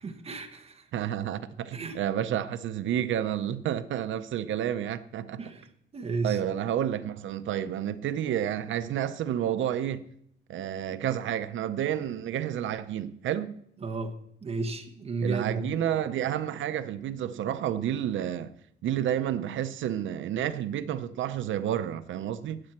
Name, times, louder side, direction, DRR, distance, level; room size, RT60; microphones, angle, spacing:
voice 1, 0.0-0.8 1.7-2.0 5.4-6.4 13.8-14.1 14.4-15.8, right 3 dB, 30° right, 1.1 m, -33 dB
voice 2, 0.9-5.4 6.2-10.0 10.5-13.6 15.2-18.5 18.8-22.6, right 10 dB, 70° right, 0.6 m, -30 dB
15.5 x 9.7 x 4.4 m
cardioid pair, 180°, 20 cm